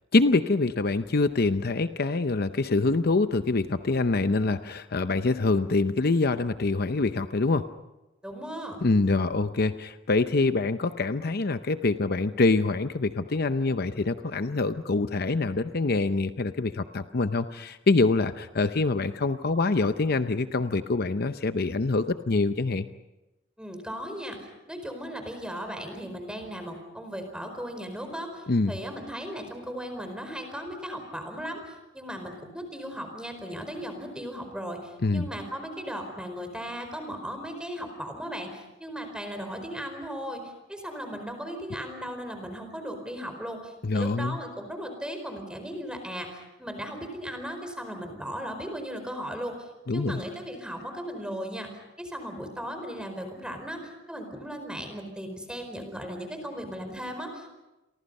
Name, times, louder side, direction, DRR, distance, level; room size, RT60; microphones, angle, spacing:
voice 1, 0.1-7.6 8.8-22.9 28.5-28.7 35.0-35.3 43.8-44.4 49.9-50.2, left 3 dB, 55° left, 10 dB, 0.7 m, -25 dB
voice 2, 8.2-8.8 23.6-57.5, equal, 5° right, 6 dB, 4.7 m, -37 dB
30.0 x 23.5 x 5.5 m, 1.0 s
head